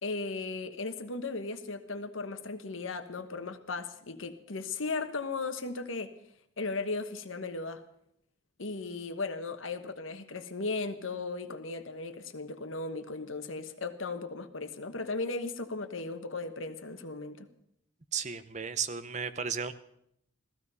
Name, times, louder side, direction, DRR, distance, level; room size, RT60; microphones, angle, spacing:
voice 1, 0.0-6.1 6.6-7.8 8.6-17.5, left 3 dB, 85° left, 9 dB, 1.2 m, -36 dB
voice 2, 18.1-19.7, right 6 dB, 35° right, 11 dB, 0.8 m, -34 dB
15.5 x 15.0 x 5.5 m, 0.75 s
head